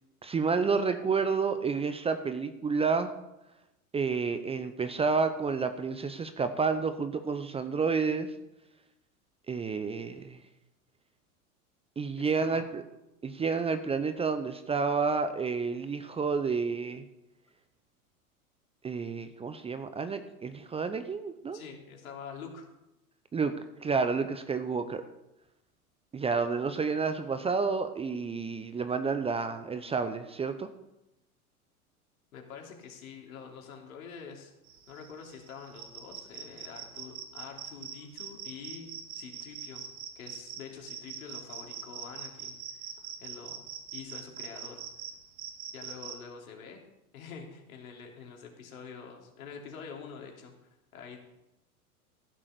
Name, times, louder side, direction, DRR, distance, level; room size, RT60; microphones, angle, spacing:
voice 1, 0.2-3.1 3.9-8.3 9.5-10.4 12.0-12.8 13.2-17.0 18.8-21.6 23.3-23.5 23.8-25.0 26.1-30.7, right 5 dB, 15° right, 10 dB, 0.7 m, -30 dB
voice 2, 12.2-12.7 21.5-22.7 32.3-34.5 34.9-39.8 40.1-42.9 43.2-43.6 43.9-44.8 45.7-46.8 47.1-50.5 50.9-51.2, left 6 dB, 70° left, 1 dB, 3.3 m, -46 dB
sound 1, 34.7-46.2, right 8 dB, 55° right, 2.5 m, -43 dB
15.0 x 7.2 x 6.8 m, 0.93 s
hypercardioid pair, 100°, 44 cm